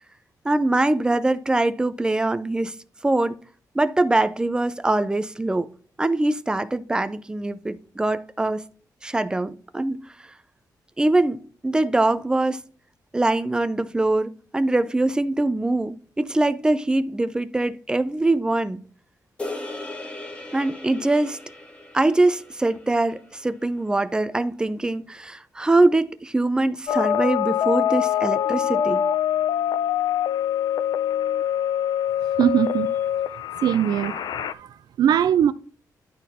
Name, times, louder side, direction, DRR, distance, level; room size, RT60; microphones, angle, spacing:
voice 1, 0.4-2.7 3.0-3.4 3.7-5.7 6.0-8.6 9.0-10.1 11.0-12.6 13.1-18.8 20.5-21.4 21.9-29.0, right 2 dB, 10° right, 0.4 m, -23 dB
sound 1, 19.4-23.9, left 2 dB, 15° left, 1.5 m, -38 dB
sound 2, 26.9-34.5, left 10 dB, 80° left, 0.4 m, -24 dB
voice 2, 32.4-32.9 33.6-35.5, right 9 dB, 80° right, 0.4 m, -21 dB
10.5 x 4.3 x 4.1 m
wide cardioid pair, 160°, 7 cm